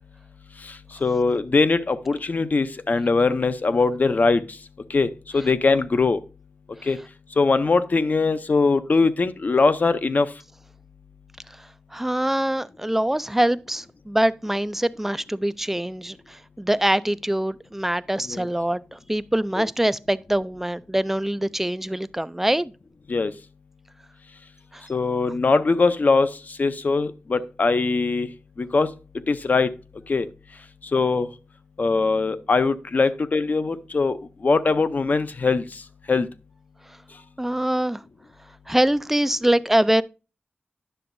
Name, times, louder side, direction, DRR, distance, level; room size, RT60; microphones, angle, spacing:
voice 1, 0.6-4.4 4.9-6.2 6.8-7.0 7.4-10.3 18.3-18.5 19.6-19.7 23.1-23.3 24.9-28.3 28.6-28.9 29.3-29.7 30.1-30.3 30.9-31.3 31.8-34.2 34.4-35.8 36.1-36.3, left 4 dB, 45° left, 0.5 m, -21 dB
voice 2, 11.9-22.7 24.7-24.8 37.4-38.0 38.7-40.0, right 1 dB, 5° right, 0.3 m, -24 dB
10.0 x 6.8 x 2.6 m
wide cardioid pair, 100°, 4 cm